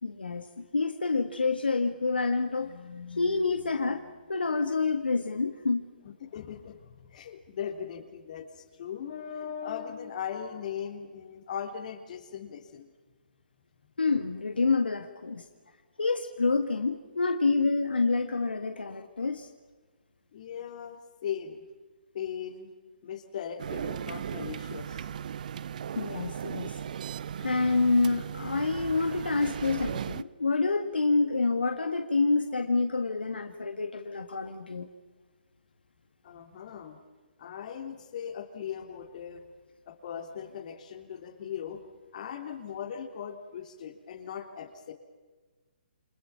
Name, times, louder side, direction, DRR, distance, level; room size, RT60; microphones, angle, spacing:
voice 1, 0.0-4.0 4.3-5.9 14.0-15.5 16.0-19.5 26.0-26.8 27.4-34.9, left 3 dB, 80° left, 6 dB, 1.7 m, -28 dB
voice 2, 6.3-12.9 20.3-21.6 22.1-22.7 23.0-25.1 36.2-37.0 37.4-39.5 39.9-41.8 42.1-44.9, left 8 dB, 50° left, 6 dB, 3.3 m, -39 dB
sound 1, 23.6-30.2, right 8 dB, 55° right, 0.7 m, -37 dB
28.5 x 26.0 x 5.8 m, 1.3 s
figure-of-eight pair, 135°, 5 cm